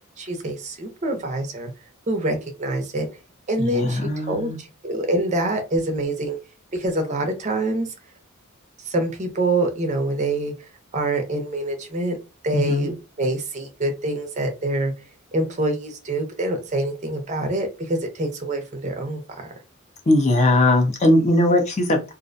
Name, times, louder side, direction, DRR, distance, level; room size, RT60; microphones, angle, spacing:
voice 1, 0.2-1.7 2.1-3.1 3.5-6.4 6.7-7.9 8.8-12.2 12.4-14.9 15.3-19.6, right 2 dB, 35° right, 4 dB, 0.5 m, -26 dB
voice 2, 3.6-4.6 12.5-12.9 20.1-22.0, left 1 dB, 30° left, 3 dB, 0.5 m, -19 dB
2.4 x 2.1 x 2.5 m, 0.29 s
head